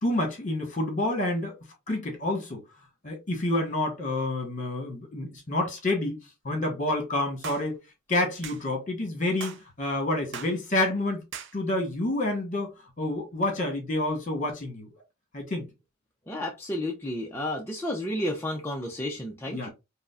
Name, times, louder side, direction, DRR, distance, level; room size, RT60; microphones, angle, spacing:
voice 1, 0.0-1.5 1.9-2.6 3.0-6.2 6.4-7.8 8.1-11.2 11.5-14.9 15.3-15.7 19.5-19.7, left 1 dB, 35° left, 1.3 m, -28 dB
sound 1, 7.4-7.7 8.4-8.6 9.4-9.6 10.3-10.6 11.3-11.5, right 7 dB, 55° right, 0.5 m, -39 dB
voice 2, 16.3-19.7, left 1 dB, 10° left, 0.4 m, -31 dB
4.9 x 2.0 x 2.4 m
head